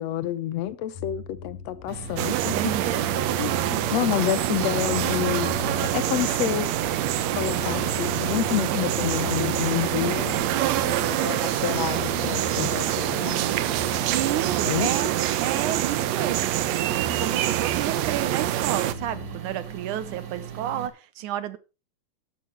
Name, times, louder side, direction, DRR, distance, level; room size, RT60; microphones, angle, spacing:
voice 1, 0.0-2.5 3.4-5.5 5.8-6.7 7.4-10.3 11.1-13.4 14.7-14.9, left 13 dB, 80° left, 1.5 m, -28 dB
sound 1, 0.9-19.3, left 7 dB, 65° left, 4.2 m, -39 dB
sound 2, 1.9-20.9, right 8 dB, 45° right, 1.5 m, -38 dB
sound 3, 2.2-18.9, right 13 dB, 85° right, 1.5 m, -26 dB
voice 2, 2.5-3.1 14.1-15.1 15.4-21.6, right 12 dB, 70° right, 2.1 m, -31 dB
14.0 x 11.5 x 3.3 m
omnidirectional pair, 4.2 m